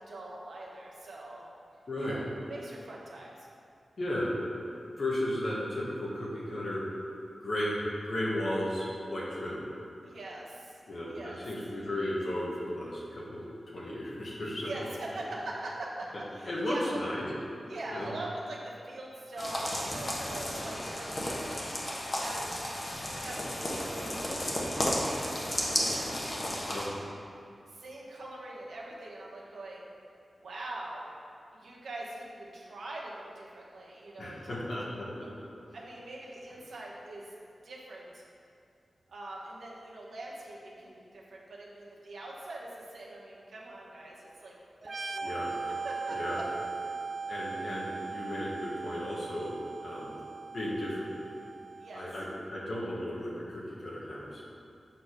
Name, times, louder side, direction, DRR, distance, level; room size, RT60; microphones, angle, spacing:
voice 1, 0.0-1.5 2.0-3.5 10.0-10.8 11.1-11.4 14.6-17.0 17.7-22.6 23.1-26.7 27.7-29.9 30.4-31.1 31.5-34.5 35.7-37.3 37.6-38.2 39.1-44.6 44.8-46.4 51.8-52.1, right 2 dB, 90° right, -4 dB, 1.2 m, -43 dB
voice 2, 1.9-2.2 4.0-4.3 5.0-6.8 7.4-9.6 10.9-13.4 13.7-14.9 16.5-17.2 17.9-18.1 26.7-26.9 34.2-35.5 45.2-45.5 46.1-46.4 47.3-50.1 50.5-51.1 51.9-54.4, left 1 dB, 65° left, -6 dB, 1.4 m, -34 dB
sound 1, 19.4-26.9, left 1 dB, 40° left, 1.2 m, -33 dB
sound 2, 44.8-52.3, right 4 dB, 55° right, 0.4 m, -39 dB
7.3 x 3.3 x 6.0 m, 2.5 s
cardioid pair, 60°, 0 cm